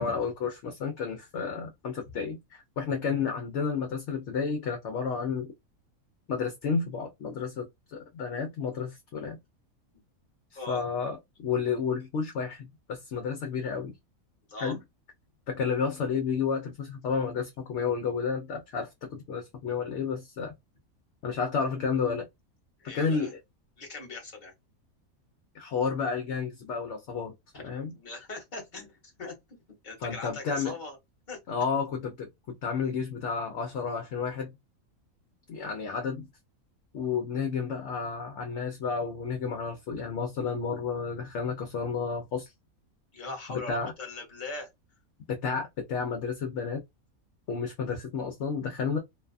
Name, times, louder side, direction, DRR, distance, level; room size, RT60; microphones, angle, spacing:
voice 1, 0.0-5.5 6.3-9.4 10.7-13.9 14.6-14.8 15.5-20.5 21.2-22.3 22.8-23.4 25.5-27.3 27.6-27.9 30.0-30.7 31.5-34.5 35.5-36.3 36.9-42.5 43.5-43.9 45.3-46.8 47.5-49.0, left 5 dB, 65° left, 0.8 m, -31 dB
voice 2, 22.8-23.3 23.8-24.5 27.5-27.6 27.9-29.3 29.8-31.0 31.3-31.4 43.1-44.7, left 3 dB, 35° left, 1.1 m, -40 dB
2.6 x 2.3 x 2.4 m
omnidirectional pair, 1.5 m